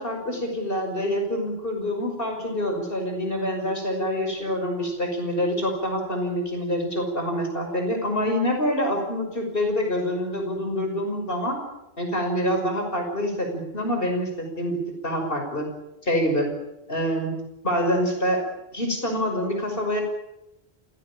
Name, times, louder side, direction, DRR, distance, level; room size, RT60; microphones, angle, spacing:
voice 1, 0.0-11.6 12.0-14.8 15.0-15.7 16.0-16.5 16.9-17.3 17.6-18.4 18.7-20.0, equal, 60° left, 3 dB, 6.3 m, -26 dB
28.0 x 17.0 x 8.8 m, 0.92 s
omnidirectional pair, 1.1 m